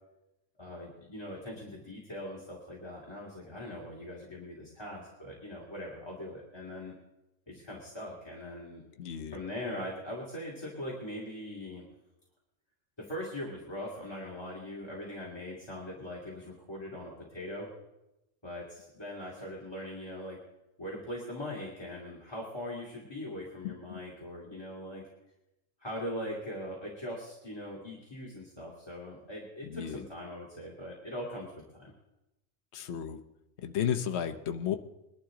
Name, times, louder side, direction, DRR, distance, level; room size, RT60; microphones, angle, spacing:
voice 1, 0.6-6.9 7.5-8.8 9.3-11.9 13.0-17.7 18.4-20.4 20.8-25.0 25.8-31.9, left 1 dB, 20° left, -4 dB, 2.5 m, -41 dB
voice 2, 9.0-9.4 23.6-24.0 29.6-30.0 32.7-33.2 33.6-34.8, left 9 dB, 60° left, 6 dB, 1.0 m, -33 dB
21.5 x 11.5 x 3.8 m, 0.94 s
omnidirectional pair, 1.4 m